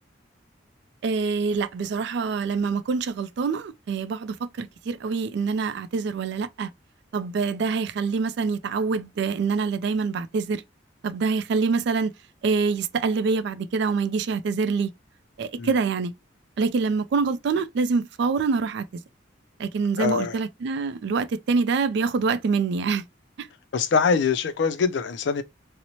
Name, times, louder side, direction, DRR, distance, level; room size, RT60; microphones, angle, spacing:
voice 1, 1.0-6.7 7.1-10.6 11.0-12.1 12.4-14.9 15.4-16.1 16.6-19.0 19.6-23.0 23.4-23.5, right 4 dB, 60° right, 0.3 m, -25 dB
voice 2, 20.0-20.4 23.7-25.4, left 5 dB, 65° left, 0.4 m, -23 dB
2.7 x 2.0 x 2.9 m
head